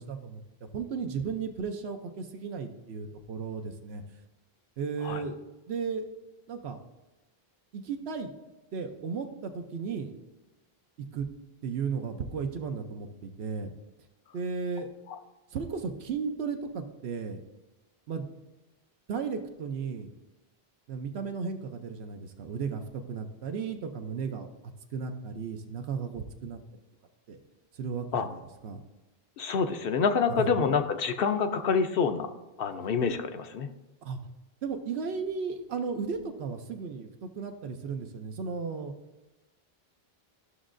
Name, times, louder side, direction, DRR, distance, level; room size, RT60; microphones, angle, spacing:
voice 1, 0.0-4.0 4.8-5.3 5.7-6.1 6.5-6.8 7.7-8.3 8.7-10.1 11.0-11.3 11.6-13.7 14.3-14.9 15.5-17.4 18.1-18.3 19.1-20.1 20.9-24.5 24.9-26.6 27.3-27.4 27.7-28.8 30.3-30.5 34.0-34.2 34.6-38.9, right 5 dB, 85° right, 5 dB, 0.9 m, -35 dB
voice 2, 29.4-32.3 32.6-33.7, left 5 dB, 65° left, 8 dB, 0.8 m, -27 dB
13.0 x 6.1 x 2.5 m, 1.1 s
omnidirectional pair, 1.0 m